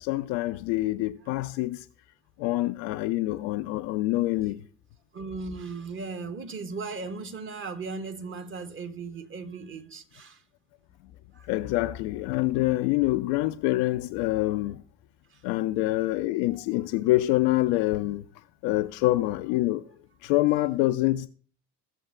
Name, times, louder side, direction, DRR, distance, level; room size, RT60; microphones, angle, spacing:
voice 1, 0.0-1.9 2.4-4.6 11.5-14.8 15.4-18.2 18.6-19.9 20.2-21.3, left 17 dB, 45° left, 0.5 m, -26 dB
voice 2, 5.1-10.4 11.3-11.5 15.3-15.4, right 4 dB, 25° right, 1.0 m, -37 dB
15.0 x 7.0 x 2.5 m
figure-of-eight pair, 60°, 47 cm